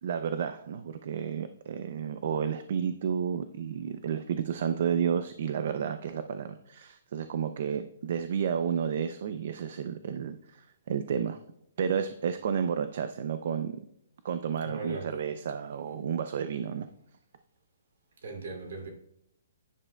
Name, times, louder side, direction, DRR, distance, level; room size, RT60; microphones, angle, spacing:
voice 1, 0.0-11.4 11.8-13.8 14.2-16.9, right 7 dB, 45° right, 0.4 m, -31 dB
voice 2, 14.6-15.1 18.2-18.9, right 3 dB, 60° right, 2.6 m, -38 dB
10.5 x 10.0 x 2.2 m
hypercardioid pair, 180°, 0 cm